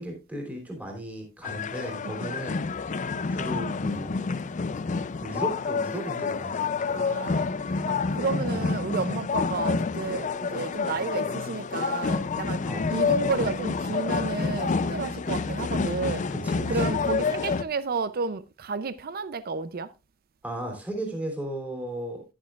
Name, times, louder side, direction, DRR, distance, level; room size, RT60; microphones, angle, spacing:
voice 1, 0.0-3.0 3.3-4.1 5.2-7.4 7.7-7.8 8.4-8.6 12.7-12.9 16.3-17.0 20.4-22.2, right 1 dB, 10° right, 3.0 m, -36 dB
sound 1, 1.4-17.6, left 4 dB, 35° left, 0.4 m, -28 dB
voice 2, 2.0-2.4 6.9-12.6 12.9-16.3 16.7-19.9, right 4 dB, 50° right, 0.5 m, -32 dB
10.5 x 10.0 x 2.4 m
head